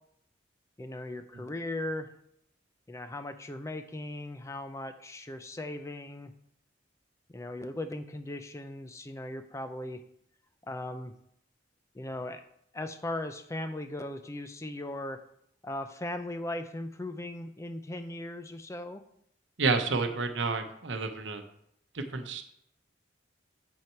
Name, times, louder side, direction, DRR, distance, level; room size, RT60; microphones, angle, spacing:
voice 1, 0.8-2.1 2.9-6.3 7.3-10.0 10.7-11.1 11.9-12.4 12.7-15.2 15.6-19.0, left 1 dB, 15° left, 8 dB, 0.4 m, -38 dB
voice 2, 19.6-21.4 21.9-22.4, right 4 dB, 70° right, 6 dB, 0.9 m, -30 dB
7.3 x 5.9 x 4.5 m, 0.73 s
head